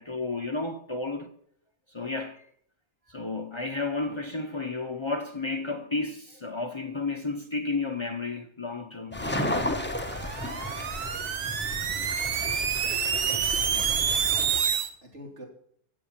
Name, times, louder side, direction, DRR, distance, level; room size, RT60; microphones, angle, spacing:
voice 1, 0.0-1.3 1.9-2.5 3.1-9.3, left 3 dB, 25° left, 0.6 m, -32 dB
sound 1, 9.1-14.6, left 1 dB, 10° left, 1.1 m, -33 dB
sound 2, 10.1-14.9, right 7 dB, 75° right, 1.5 m, -28 dB
voice 2, 13.0-14.1 14.7-15.5, equal, 45° right, 3.6 m, -47 dB
17.0 x 7.4 x 7.3 m
omnidirectional pair, 1.7 m